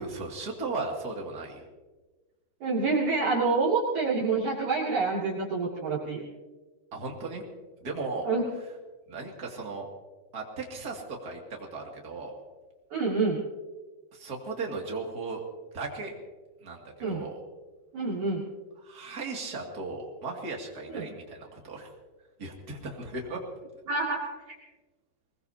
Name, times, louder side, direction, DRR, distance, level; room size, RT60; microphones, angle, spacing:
voice 1, 0.0-1.6 6.9-7.4 7.8-8.3 9.1-9.9 10.3-12.3 14.1-15.4 15.7-16.1 16.6-17.4 18.8-21.9 22.4-23.4, right 3 dB, 30° right, 0 dB, 1.9 m, -36 dB
voice 2, 2.6-6.2 8.2-8.4 12.9-13.4 17.0-17.2 17.9-18.4 20.9-21.0 23.9-24.2, right 4 dB, 50° right, -6 dB, 3.5 m, -27 dB
24.5 x 20.5 x 2.9 m, 1.3 s
omnidirectional pair, 5.1 m